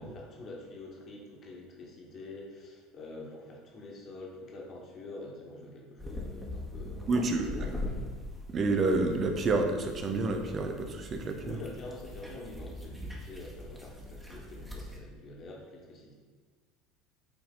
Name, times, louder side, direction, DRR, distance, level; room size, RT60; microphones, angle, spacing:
voice 1, 0.0-7.9 11.4-16.1, left 2 dB, 40° left, -2 dB, 1.8 m, -46 dB
sound 1, 6.0-15.0, left 1 dB, 10° right, 1.5 m, -42 dB
voice 2, 7.1-7.5 8.5-11.6, right 3 dB, 35° right, 5 dB, 1.0 m, -29 dB
8.6 x 4.3 x 4.0 m, 1.5 s
figure-of-eight pair, 70°, 0 cm